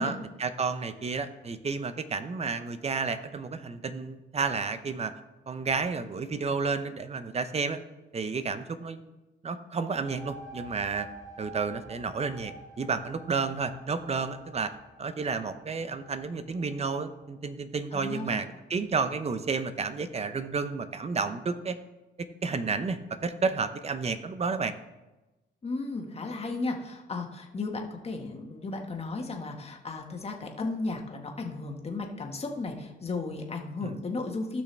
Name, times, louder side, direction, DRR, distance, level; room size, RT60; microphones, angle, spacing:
voice 1, 0.0-5.1 5.5-7.8 8.1-9.0 9.4-11.1 11.4-12.5 12.8-14.7 15.0-21.8 22.2-24.7 33.8-33.9, right 4 dB, 30° right, 11 dB, 0.7 m, -31 dB
sound 1, 9.8-17.3, right 2 dB, 15° right, 1.3 m, -49 dB
voice 2, 17.9-18.2 25.6-34.6, left 3 dB, 30° left, 2 dB, 1.6 m, -34 dB
15.5 x 6.1 x 3.4 m, 1.1 s
cardioid pair, 90°, 20 cm